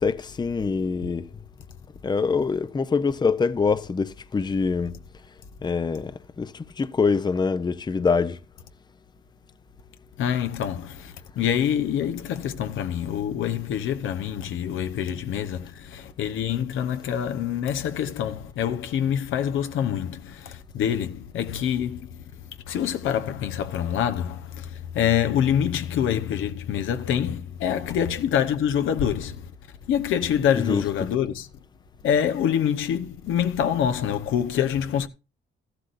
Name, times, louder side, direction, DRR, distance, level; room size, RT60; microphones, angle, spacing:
voice 1, 0.0-1.3 2.0-5.0 5.6-8.4 30.5-30.8, left 5 dB, 20° left, 0.6 m, -24 dB
voice 2, 10.2-22.0 22.7-24.4 24.9-29.4 29.9-31.5 32.0-35.1, left 9 dB, 80° left, 1.0 m, -25 dB
13.5 x 12.0 x 2.6 m
cardioid pair, 90°, 20 cm